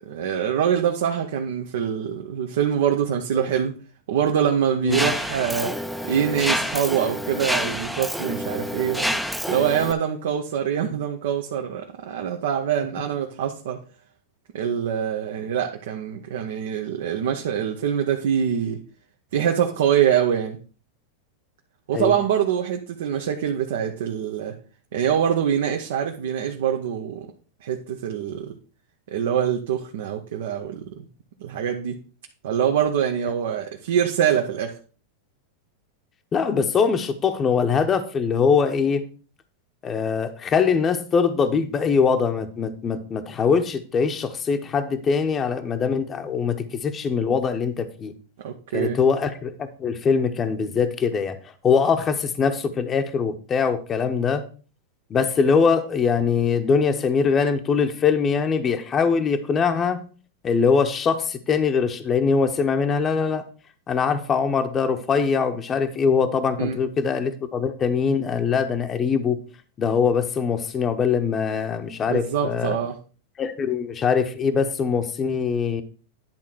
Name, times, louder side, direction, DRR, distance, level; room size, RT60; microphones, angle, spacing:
voice 1, 0.1-3.7 4.1-5.7 6.0-9.2 9.5-13.8 14.5-18.8 19.3-20.6 21.9-24.5 24.9-27.3 27.6-28.5 29.1-31.0 31.4-32.0 32.4-34.7 48.4-49.0 66.6-66.8 72.1-72.9, right 9 dB, 75° right, 2 dB, 1.0 m, -24 dB
Mechanisms, 4.9-9.9, equal, ahead, 0.6 m, -28 dB
voice 2, 36.3-39.0 39.8-48.1 48.7-49.5 49.8-54.4 55.1-60.0 60.4-63.4 63.9-69.4 69.8-72.8 73.4-75.8, left 6 dB, 25° left, 7 dB, 0.9 m, -22 dB
10.5 x 3.8 x 6.0 m, 0.38 s
hypercardioid pair, 125°, 0 cm